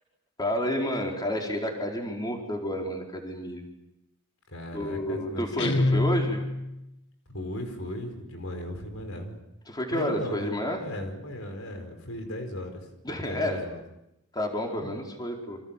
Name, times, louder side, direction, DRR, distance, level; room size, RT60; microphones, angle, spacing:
voice 1, 0.4-3.6 4.7-6.4 9.7-10.9 13.0-13.6 14.3-15.6, equal, 20° left, 1 dB, 4.6 m, -30 dB
voice 2, 4.5-5.5 5.9-6.1 7.3-9.4 9.9-10.5 10.8-12.9 13.2-13.8 14.8-15.0, left 1 dB, 75° left, 6 dB, 5.0 m, -37 dB
Guitar, 5.6-6.8, left 2 dB, 55° left, 1.8 m, -26 dB
29.5 x 26.0 x 7.5 m, 0.89 s
head